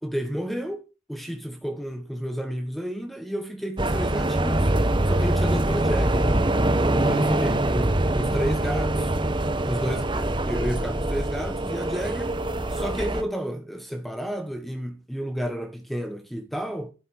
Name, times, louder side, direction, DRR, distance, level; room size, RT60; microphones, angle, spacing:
voice 1, 0.0-0.8 1.1-4.7 5.1-6.3 6.9-9.1 9.7-12.3 12.7-16.9, equal, ahead, 1.5 m, -31 dB
sound 1, 3.8-13.2, right 1 dB, 25° right, 1.1 m, -24 dB
12.0 x 10.5 x 8.1 m
head